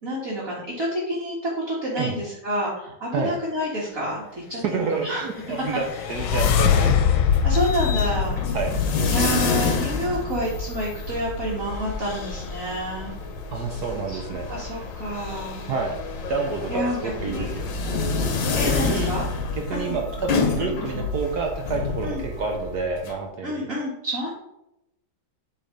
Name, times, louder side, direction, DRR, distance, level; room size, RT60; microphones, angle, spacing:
voice 1, 0.0-5.3 7.4-8.4 9.1-13.1 14.1-14.2 14.5-15.7 16.7-17.0 17.3-17.5 18.6-19.3 19.7-19.9 20.6-20.8 22.0-22.2 23.4-24.3, equal, 45° right, -6 dB, 2.0 m, -29 dB
voice 2, 4.5-7.2 8.5-8.8 9.0-9.2 13.5-14.5 15.7-16.0 16.3-17.7 18.6-19.1 19.5-23.7, right 4 dB, 60° right, 2 dB, 1.3 m, -29 dB
sound 1, 5.3-9.5, left 8 dB, 90° left, 1.5 m, -23 dB
sound 2, 6.1-23.1, left 4 dB, 70° left, 1.8 m, -28 dB
8.5 x 3.9 x 5.1 m, 0.86 s
omnidirectional pair, 2.1 m